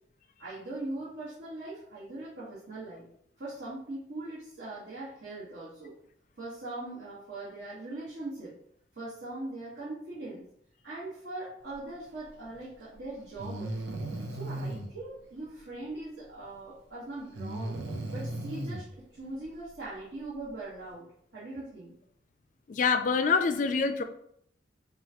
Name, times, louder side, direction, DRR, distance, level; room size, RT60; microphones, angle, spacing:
voice 1, 0.4-3.0 3.4-5.9 6.4-8.5 8.9-10.4 10.8-13.8 14.3-17.8 18.1-18.9 19.1-21.1 21.3-21.9, right 2 dB, 60° right, -10 dB, 1.4 m, -40 dB
Breathing, 12.5-12.6 13.4-14.9 17.3-18.8, right 1 dB, 80° right, 0.7 m, -36 dB
voice 2, 22.7-24.0, left 5 dB, 45° left, 8 dB, 0.3 m, -25 dB
5.5 x 2.3 x 2.9 m, 0.69 s
head